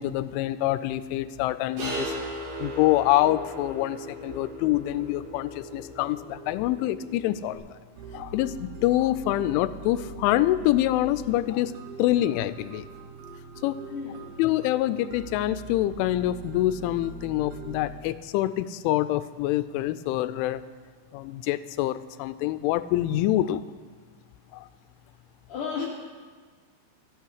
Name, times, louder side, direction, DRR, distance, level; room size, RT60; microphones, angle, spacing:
voice 1, 0.0-2.1 2.6-7.8 8.1-11.7 12.0-12.9 13.6-13.8 14.4-20.6 21.1-23.6 24.5-24.7, left 14 dB, 85° left, 14 dB, 3.0 m, -26 dB
sound 1, 1.8-7.5, right 1 dB, 65° right, 4.8 m, -38 dB
sound 2, 8.0-18.0, right 3 dB, 80° right, 1.9 m, -42 dB
voice 2, 13.9-14.3 25.5-25.9, left 6 dB, 70° left, -1 dB, 2.0 m, -33 dB
25.0 x 8.8 x 4.7 m, 1.5 s
omnidirectional pair, 5.5 m